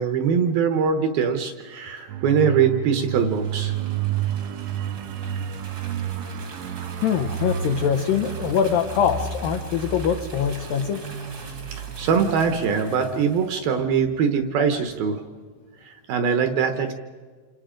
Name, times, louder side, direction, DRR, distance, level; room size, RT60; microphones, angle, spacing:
voice 1, 0.0-3.8 11.7-15.2 15.8-16.9, right 6 dB, 70° right, 7 dB, 2.4 m, -22 dB
sound 1, 2.1-14.4 14.7-14.9, right 9 dB, 85° right, 3.3 m, -31 dB
sound 2, 2.9-13.7, right 3 dB, 45° right, 1.3 m, -43 dB
voice 2, 7.0-11.1, left 8 dB, 85° left, 8 dB, 2.0 m, -23 dB
28.5 x 27.0 x 5.1 m, 1.5 s
omnidirectional pair, 5.3 m